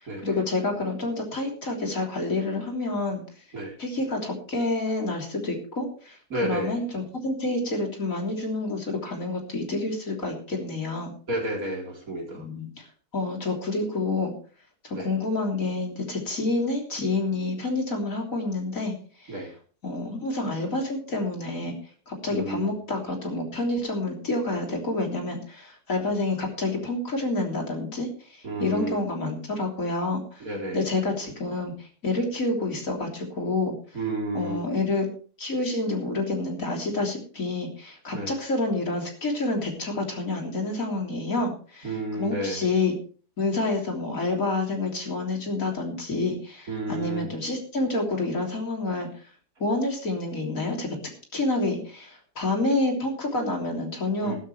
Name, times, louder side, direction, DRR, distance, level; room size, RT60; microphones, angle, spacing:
voice 1, 0.0-3.2 3.8-11.1 12.3-12.8 13.1-14.3 14.8-18.9 19.2-19.5 19.8-21.7 22.1-33.7 34.3-35.1 35.4-43.0 43.4-49.1 49.6-50.9 51.3-54.4, left 2 dB, 55° left, 1 dB, 3.9 m, -28 dB
voice 2, 6.3-6.7 11.3-12.4 14.9-15.1 19.3-19.5 22.3-22.7 28.4-29.0 30.4-30.8 33.9-34.6 38.1-38.3 41.8-42.6 46.7-47.3 54.2-54.4, right 1 dB, 60° right, 0 dB, 4.1 m, -31 dB
15.5 x 13.0 x 3.3 m, 0.40 s
omnidirectional pair, 1.7 m